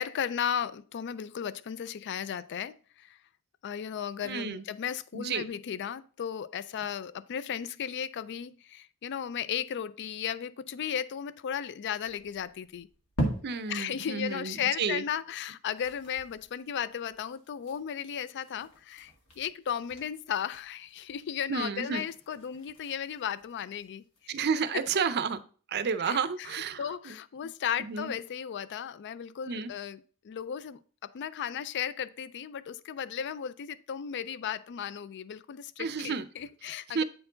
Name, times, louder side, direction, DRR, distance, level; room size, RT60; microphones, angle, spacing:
voice 1, 0.0-3.2 3.6-12.9 13.7-24.0 24.7-24.8 26.0-37.0, left 8 dB, 50° left, 0.3 m, -35 dB
voice 2, 4.2-4.6 5.1-5.5 13.4-15.0 21.5-22.0 24.3-25.4 25.7-26.8 27.1-27.2 27.8-28.1 29.5-29.7 35.8-36.3 36.9-37.0, right 5 dB, 45° right, 0.5 m, -31 dB
sound 1, 12.0-13.9 14.3-14.4 14.7-14.8 15.2-15.3 15.6-24.3, right 1 dB, 75° left, 2.0 m, -41 dB
8.8 x 4.5 x 3.8 m
head